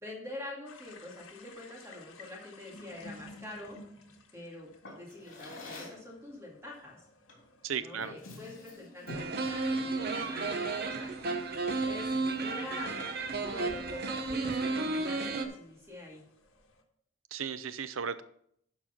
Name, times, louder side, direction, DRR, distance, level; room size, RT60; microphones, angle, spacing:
voice 1, 0.0-3.8 4.3-7.0 7.8-11.1 11.8-12.1 12.4-13.1 13.4-16.2, left 2 dB, 15° right, -2 dB, 2.2 m, -45 dB
sound 1, 0.7-16.8, left 2 dB, 90° left, 1.4 m, -55 dB
Drawer open or close, 4.8-6.1 7.3-7.5 7.9-9.4, left 2 dB, 70° left, 3.2 m, -46 dB
voice 2, 7.6-8.1 17.3-18.2, right 7 dB, 80° right, 13 dB, 0.6 m, -35 dB
sound 2, 9.1-15.5, right 3 dB, 50° right, 0.9 m, -33 dB
11.5 x 4.6 x 5.7 m, 0.70 s
head